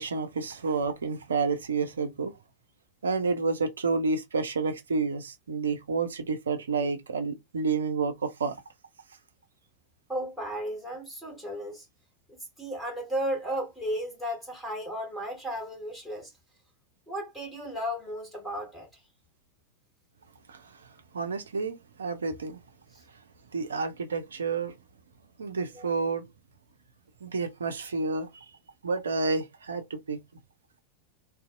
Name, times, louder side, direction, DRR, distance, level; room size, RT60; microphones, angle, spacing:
voice 1, 0.0-2.3 3.0-8.6 20.5-20.8 21.1-22.6 23.5-24.7 25.4-26.2 27.2-28.5 28.8-30.2, right 4 dB, 70° right, 0.5 m, -30 dB
voice 2, 10.1-11.9 12.3-16.3 17.1-19.0 22.9-23.0 25.7-25.9, equal, ahead, 1.7 m, -34 dB
2.6 x 2.3 x 2.4 m
figure-of-eight pair, 90°, 0 cm